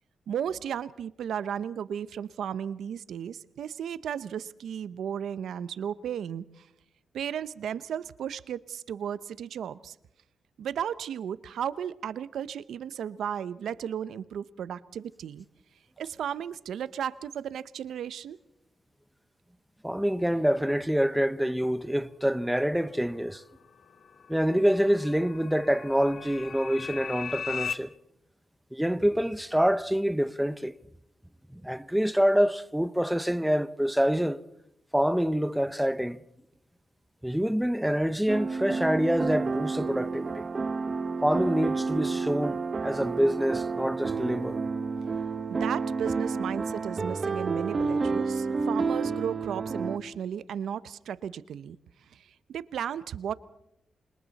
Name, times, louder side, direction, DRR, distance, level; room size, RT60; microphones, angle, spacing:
voice 1, 0.3-6.7 7.1-10.0 10.6-15.4 16.0-18.4 45.5-51.8 52.1-53.3, right 9 dB, 90° right, 0.7 m, -34 dB
voice 2, 19.8-23.4 24.3-27.9 28.7-30.7 31.5-34.4 34.9-36.2 37.2-40.5 41.2-44.6, equal, 5° right, 0.8 m, -26 dB
sound 1, 23.4-27.8, left 7 dB, 60° left, 1.0 m, -39 dB
sound 2, 38.3-50.0, right 4 dB, 35° right, 1.0 m, -30 dB
28.5 x 26.5 x 4.1 m
cardioid pair, 105°, 0 cm